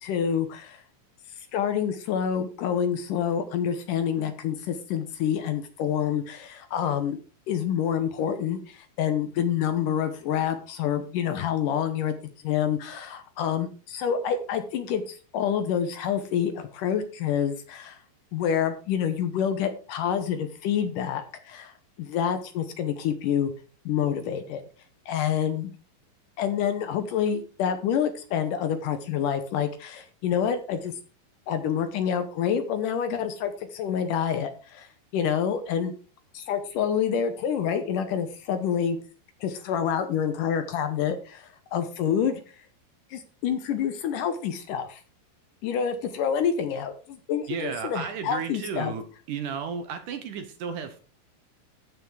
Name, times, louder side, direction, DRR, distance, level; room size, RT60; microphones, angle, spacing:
voice 1, 0.0-0.8 1.5-7.2 7.5-12.1 12.4-18.0 18.3-21.7 22.0-23.5 23.9-24.6 25.1-25.7 26.4-30.9 31.5-35.9 36.3-39.0 39.4-42.4 43.1-45.0 45.6-48.9, left 8 dB, 75° left, 9 dB, 2.0 m, -27 dB
voice 2, 47.5-51.0, right 6 dB, 65° right, 8 dB, 2.2 m, -34 dB
14.0 x 5.9 x 4.8 m, 0.37 s
omnidirectional pair, 4.6 m